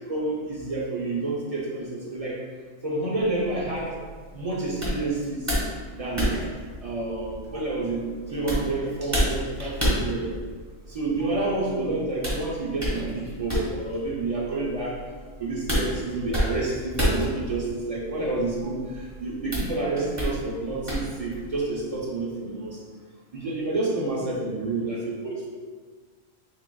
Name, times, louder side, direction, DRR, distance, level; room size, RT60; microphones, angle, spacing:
voice 1, 0.1-2.4 2.8-3.9 4.3-5.4 5.9-6.4 6.8-8.0 8.3-10.3 10.9-15.0 15.4-22.8 23.3-25.5, right 2 dB, 55° right, -4 dB, 0.4 m, -29 dB
sound 1, 3.2-21.6, equal, 15° right, 1.2 m, -31 dB
7.1 x 2.4 x 2.2 m, 1.5 s
omnidirectional pair, 1.4 m